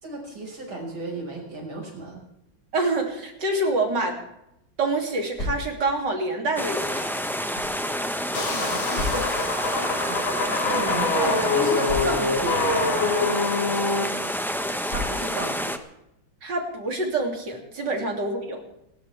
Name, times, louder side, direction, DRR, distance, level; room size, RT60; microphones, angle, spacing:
voice 1, 0.0-2.2 8.3-9.3 9.7-10.2 10.5-12.7 14.9-15.7, right 2 dB, 80° right, 0 dB, 6.4 m, -33 dB
voice 2, 2.7-4.2 4.8-7.1 16.4-18.6, right 2 dB, 55° right, 2 dB, 3.7 m, -26 dB
sound 1, 5.3-6.0 6.8-7.8 8.9-9.5 10.4-10.6 10.8-10.9 11.8-12.5 13.4-13.6 14.9-15.5, left 2 dB, 50° left, 6.0 m, -33 dB
sound 2, 6.6-15.8, equal, ahead, 0.7 m, -29 dB
sound 3, 8.3-14.0, left 3 dB, 80° left, 3.1 m, -25 dB
29.0 x 13.5 x 3.5 m, 0.81 s
omnidirectional pair, 2.2 m